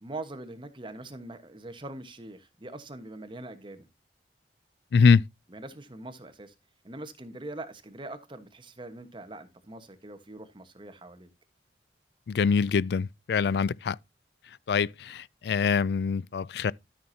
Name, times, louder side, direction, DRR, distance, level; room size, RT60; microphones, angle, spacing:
voice 1, 0.0-3.9 5.5-6.5 6.8-11.3, right 2 dB, 30° right, 1.2 m, -42 dB
voice 2, 4.9-5.2 12.3-14.0 14.7-16.7, left 5 dB, 65° left, 0.4 m, -24 dB
13.0 x 6.0 x 2.7 m
head